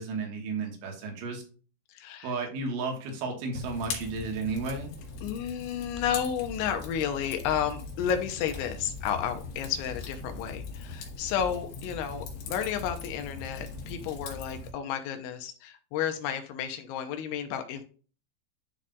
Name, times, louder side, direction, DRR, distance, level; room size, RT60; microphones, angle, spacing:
voice 1, 0.0-1.4 2.2-4.9, right 4 dB, 85° right, 2 dB, 4.0 m, -33 dB
voice 2, 2.0-2.3 5.2-17.8, left 9 dB, 85° left, 7 dB, 3.1 m, -32 dB
Fire, 3.5-14.7, left 4 dB, 65° left, 3.3 m, -40 dB
11.5 x 4.2 x 2.4 m, 0.38 s
omnidirectional pair, 5.4 m